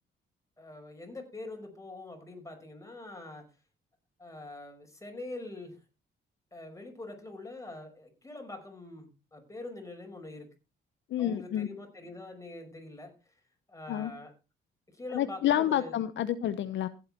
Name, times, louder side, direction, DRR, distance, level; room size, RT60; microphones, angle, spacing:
voice 1, 0.6-3.5 4.2-5.8 6.5-10.5 11.1-13.1 13.7-14.3 14.9-15.9, left 2 dB, 15° left, 5.6 m, -44 dB
voice 2, 11.1-11.7 13.9-14.1 15.1-16.9, left 11 dB, 70° left, 0.8 m, -29 dB
16.0 x 8.6 x 4.3 m
cardioid pair, 90°, 20 cm